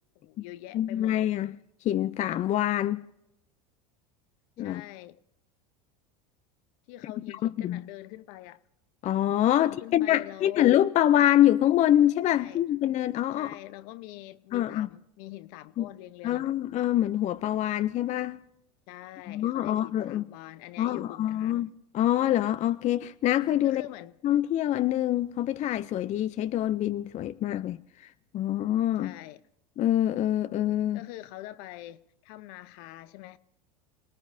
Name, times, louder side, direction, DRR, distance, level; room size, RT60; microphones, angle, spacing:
voice 1, 0.1-1.1 4.6-5.2 6.9-8.6 9.6-10.7 12.3-12.6 13.4-16.5 18.9-21.7 23.6-24.1 29.0-29.4 30.9-33.4, left 16 dB, 60° left, 0.8 m, -44 dB
voice 2, 0.7-1.5 1.8-3.0 4.6-4.8 7.0-7.8 9.0-13.6 14.5-14.9 15.8-15.9 16.2-18.4 19.3-20.2 20.8-23.8 24.2-29.1 29.8-31.1, left 12 dB, 35° left, 0.5 m, -25 dB
29.0 x 18.5 x 2.7 m
hypercardioid pair, 95°, 20 cm